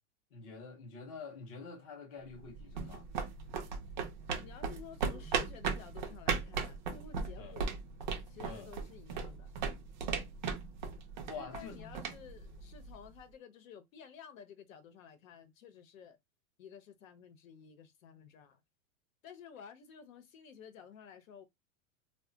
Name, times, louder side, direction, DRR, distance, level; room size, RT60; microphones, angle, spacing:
voice 1, 0.3-3.1 7.4-7.5 8.4-8.7 11.2-12.0, left 4 dB, 25° left, 0.5 m, -47 dB
sound 1, 2.3-13.1, right 5 dB, 35° right, 0.4 m, -38 dB
voice 2, 4.4-7.8 8.3-9.6 11.3-16.2 16.6-18.6 19.2-21.4, left 7 dB, 70° left, 0.9 m, -53 dB
2.3 x 2.1 x 3.7 m
supercardioid pair, 175°, 41 cm